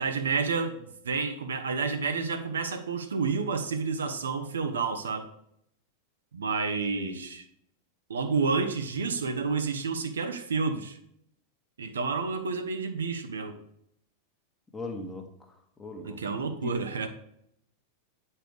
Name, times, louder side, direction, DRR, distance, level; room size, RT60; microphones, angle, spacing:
voice 1, 0.0-5.3 6.3-7.4 8.1-11.0 11.8-13.6 16.0-17.1, right 4 dB, 70° right, 0.6 m, -30 dB
voice 2, 14.7-15.2 15.8-16.2 16.6-16.7, left 2 dB, 10° left, 1.1 m, -38 dB
8.8 x 4.3 x 3.4 m
figure-of-eight pair, 90°, 0 cm